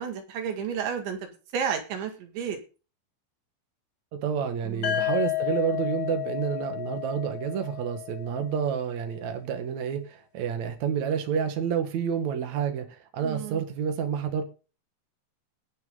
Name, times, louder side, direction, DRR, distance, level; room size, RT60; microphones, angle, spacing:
voice 1, 0.0-2.6 4.6-5.1 13.2-13.6, right 7 dB, 70° right, 4.3 m, -32 dB
voice 2, 4.1-14.4, right 7 dB, 85° right, 1.6 m, -29 dB
sound 1, 4.8-8.7, left 14 dB, 70° left, 1.3 m, -31 dB
19.0 x 6.4 x 3.9 m
omnidirectional pair, 5.7 m